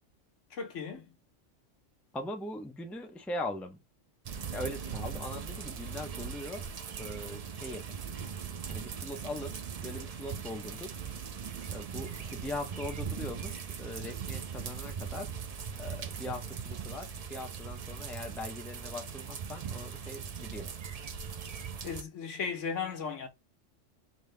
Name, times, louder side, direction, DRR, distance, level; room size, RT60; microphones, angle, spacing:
voice 1, 0.5-1.0 21.8-23.3, left 6 dB, 80° left, 1.4 m, -36 dB
voice 2, 2.1-3.8 4.5-6.7 6.9-8.0 8.7-11.0 11.7-15.3 15.7-20.7, left 1 dB, ahead, 0.5 m, -41 dB
sound 1, 4.2-22.0, right 7 dB, 50° right, 0.5 m, -40 dB
5.3 x 2.8 x 3.3 m
omnidirectional pair, 1.3 m